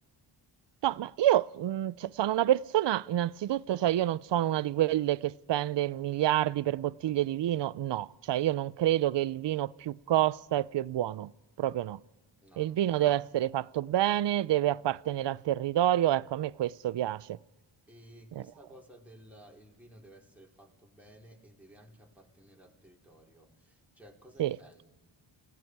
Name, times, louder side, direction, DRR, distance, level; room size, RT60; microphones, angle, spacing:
voice 1, 0.8-11.3 11.6-12.0 12.6-17.4 18.3-18.4 24.4-24.6, right 13 dB, 60° right, 0.6 m, -28 dB
voice 2, 12.4-12.9 17.9-24.9, right 1 dB, 5° right, 4.5 m, -56 dB
30.0 x 18.5 x 4.7 m
cardioid pair, 75°, 50 cm